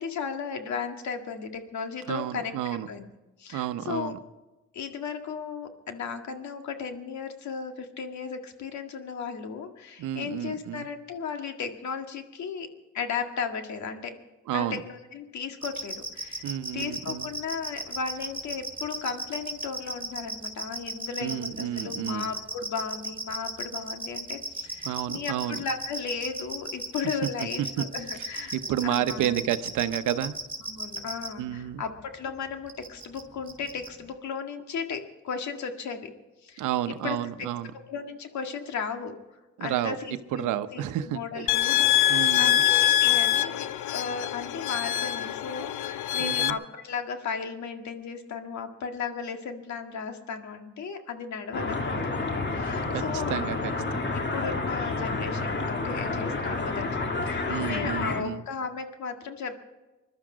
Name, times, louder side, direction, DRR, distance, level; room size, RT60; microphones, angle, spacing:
voice 1, 0.0-2.5 2.9-3.1 3.4-4.1 4.7-12.7 12.9-14.2 14.5-16.5 16.7-28.6 28.8-29.4 30.7-36.1 36.4-37.5 37.7-39.2 39.6-52.0 52.5-53.4 54.1-59.6, left 6 dB, 65° left, 5 dB, 1.9 m, -35 dB
voice 2, 2.1-2.9 3.5-4.2 10.0-10.9 14.5-14.8 16.4-17.3 21.2-22.3 24.8-25.6 27.2-27.9 28.5-30.4 31.4-31.8 36.6-37.7 39.6-40.0 40.3-41.5 42.1-42.6 46.2-46.6 52.9-54.1 57.5-58.4, right 11 dB, 85° right, 11 dB, 0.9 m, -31 dB
sound 1, 15.6-31.3 32.7-33.2 33.5-33.9, right 1 dB, 20° right, 4.1 m, -35 dB
sound 2, 41.5-46.5, left 13 dB, 90° left, 0.7 m, -24 dB
sound 3, 51.5-58.2, left 3 dB, 35° left, 1.8 m, -30 dB
21.5 x 12.0 x 5.1 m, 1.1 s
cardioid pair, 90°, 30 cm